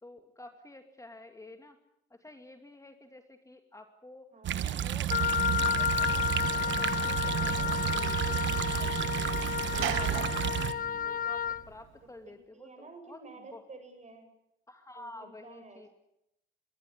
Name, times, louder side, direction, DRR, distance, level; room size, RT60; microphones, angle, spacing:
voice 1, 0.0-1.8 2.1-4.3 4.6-9.4 9.9-13.6 14.7-15.9, left 2 dB, 15° left, 6 dB, 2.4 m, -51 dB
voice 2, 4.3-4.6 7.6-8.3 12.3-14.3 15.0-15.9, right 3 dB, 35° right, 7 dB, 7.8 m, -51 dB
sound 1, 4.4-10.7, right 11 dB, 70° right, 1.2 m, -31 dB
Wind instrument woodwind instrument, 5.1-11.6, left 8 dB, 45° left, 0.9 m, -31 dB
Sliding door / Slam, 6.1-11.9, right 10 dB, 90° right, 2.0 m, -40 dB
22.5 x 17.5 x 9.9 m, 0.81 s
cardioid pair, 90°, 20 cm